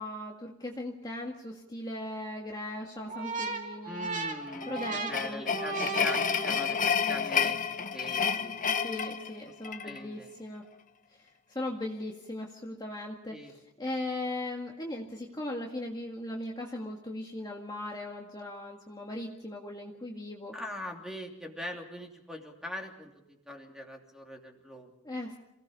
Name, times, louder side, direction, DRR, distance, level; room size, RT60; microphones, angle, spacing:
voice 1, 0.0-4.1 4.7-5.4 8.8-10.6 11.5-13.4 13.8-20.5 25.0-25.4, left 1 dB, 20° left, -1 dB, 1.9 m, -38 dB
sound 1, 3.1-7.0, right 4 dB, 35° right, 2.6 m, -36 dB
voice 2, 3.8-8.6 9.8-10.3 13.3-13.5 20.5-23.1 23.5-24.9, left 1 dB, 5° right, 1 dB, 3.0 m, -42 dB
sound 2, 4.5-10.0, left 6 dB, 35° left, 1.0 m, -30 dB
28.0 x 17.5 x 5.5 m, 0.90 s
head